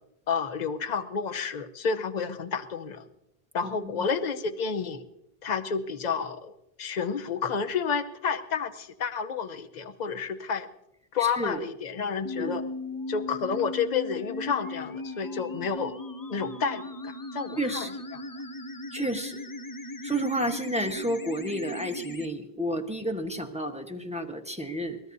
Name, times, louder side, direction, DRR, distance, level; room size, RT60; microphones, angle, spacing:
voice 1, 0.3-3.1 3.5-5.0 5.4-6.5 6.8-10.7 11.1-12.6 13.1-15.9 16.3-18.2, left 6 dB, 45° left, 8 dB, 0.9 m, -30 dB
voice 2, 3.6-4.1 11.2-11.6 12.4-12.5 17.6-17.9 18.9-19.4 20.0-25.0, right 1 dB, 5° right, 4 dB, 1.1 m, -31 dB
sound 1, 12.2-22.3, left 2 dB, 25° left, 0.5 m, -38 dB
23.0 x 19.0 x 2.7 m, 0.86 s
omnidirectional pair, 1.1 m